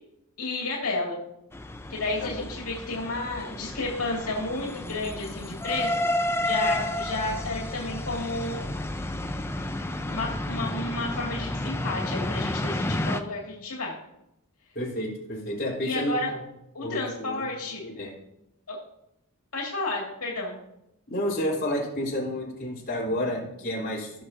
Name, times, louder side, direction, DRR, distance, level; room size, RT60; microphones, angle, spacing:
voice 1, 0.4-1.2 1.9-6.0 6.4-8.6 10.1-14.0 15.8-16.3 16.7-17.8 18.7-18.8 19.5-20.6, left 2 dB, 85° left, -3 dB, 2.3 m, -31 dB
sound 1, 1.5-13.2, left 1 dB, 10° left, 0.4 m, -31 dB
voice 2, 14.8-16.4 16.8-17.5 17.8-18.1 21.1-24.2, equal, 45° left, -4 dB, 3.8 m, -30 dB
17.5 x 6.9 x 2.8 m, 0.82 s
head